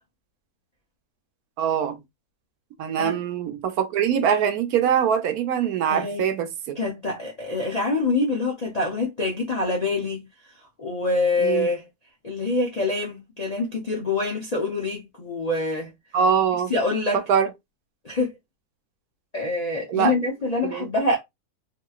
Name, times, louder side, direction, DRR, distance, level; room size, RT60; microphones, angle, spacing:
voice 1, 1.6-2.0 2.8-6.8 11.4-11.7 16.1-16.7 17.1-17.5 19.9-20.1 20.6-20.9, right 8 dB, 75° right, 1.1 m, -23 dB
voice 2, 5.9-6.3 6.8-10.3 10.8-11.8 12.2-15.9 16.7-17.2 18.0-18.3 19.3-21.2, left 2 dB, 50° left, 0.4 m, -25 dB
2.9 x 2.9 x 2.3 m
omnidirectional pair, 1.6 m